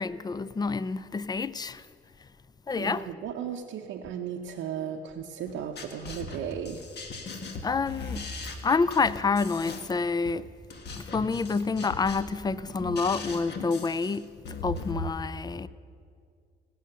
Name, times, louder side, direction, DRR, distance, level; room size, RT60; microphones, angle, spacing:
voice 1, 0.0-1.8 2.7-3.1 7.6-10.5 11.0-15.7, left 4 dB, 20° left, 0.4 m, -28 dB
voice 2, 2.7-6.9, right 8 dB, 80° right, 0.7 m, -35 dB
sound 1, 5.5-15.1, left 3 dB, 55° left, 1.5 m, -39 dB
17.5 x 6.3 x 6.7 m
cardioid pair, 90°, 20 cm